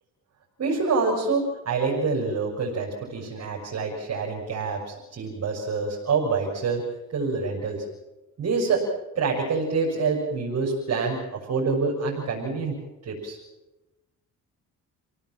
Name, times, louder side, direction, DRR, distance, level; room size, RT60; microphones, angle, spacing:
voice 1, 0.6-6.9 7.1-7.8 8.4-8.9 9.1-12.7 13.0-13.4, right 4 dB, 55° right, -2 dB, 6.1 m, -26 dB
28.5 x 17.5 x 7.6 m, 1.0 s
cardioid pair, 90°, 30 cm